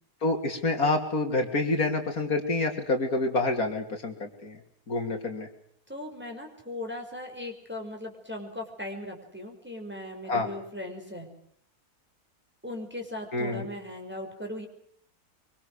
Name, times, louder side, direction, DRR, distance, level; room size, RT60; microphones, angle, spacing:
voice 1, 0.2-4.6 4.9-5.5 10.3-10.5 13.3-13.7, left 2 dB, 70° left, 4 dB, 3.4 m, -27 dB
voice 2, 5.9-11.3 12.6-14.7, left 1 dB, 5° right, 2 dB, 5.6 m, -38 dB
25.0 x 24.5 x 6.5 m, 0.66 s
omnidirectional pair, 1.6 m